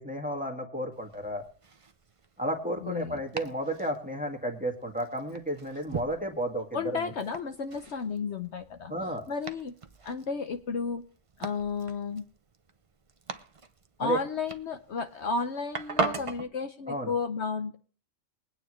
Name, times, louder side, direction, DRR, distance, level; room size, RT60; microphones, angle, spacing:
voice 1, 0.0-1.4 2.4-6.6 6.9-7.0 8.9-9.2 14.0-14.2 16.9-17.1, right 1 dB, 5° right, 2 dB, 1.7 m, -32 dB
Domestic sounds home sounds, 0.9-16.5, right 4 dB, 35° right, 0.6 m, -40 dB
voice 2, 2.8-3.2 6.7-8.9 9.3-9.7 10.0-11.0 11.4-12.2 14.0-17.8, left 5 dB, 60° left, 7 dB, 1.1 m, -33 dB
21.5 x 9.1 x 3.1 m, 0.42 s
omnidirectional pair, 1.3 m